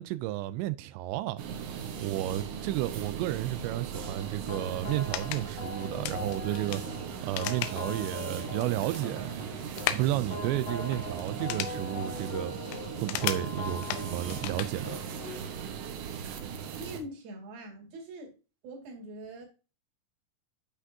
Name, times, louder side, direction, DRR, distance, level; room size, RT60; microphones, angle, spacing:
voice 1, 0.0-1.4 2.0-9.3 9.9-12.5 13.0-15.0, right 14 dB, 90° right, 2.5 m, -32 dB
sound 1, 1.4-17.0, right 8 dB, 70° right, 3.2 m, -38 dB
sound 2, 3.9-15.6, left 4 dB, 65° left, 1.8 m, -42 dB
sound 3, 4.8-14.8, left 13 dB, 90° left, 3.4 m, -38 dB
voice 2, 16.8-18.3 18.6-19.5, right 1 dB, 55° right, 3.6 m, -43 dB
10.5 x 5.9 x 2.7 m
omnidirectional pair, 5.6 m